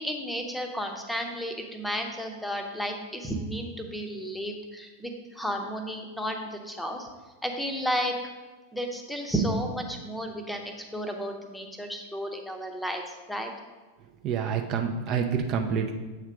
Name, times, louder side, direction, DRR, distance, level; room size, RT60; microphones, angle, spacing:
voice 1, 0.0-7.1 7.4-8.1 8.7-10.6 10.9-13.5, equal, 5° left, 3 dB, 0.8 m, -32 dB
voice 2, 14.2-15.9, right 6 dB, 35° right, 4 dB, 0.5 m, -27 dB
7.8 x 3.2 x 4.9 m, 1.3 s
figure-of-eight pair, 90°, 0 cm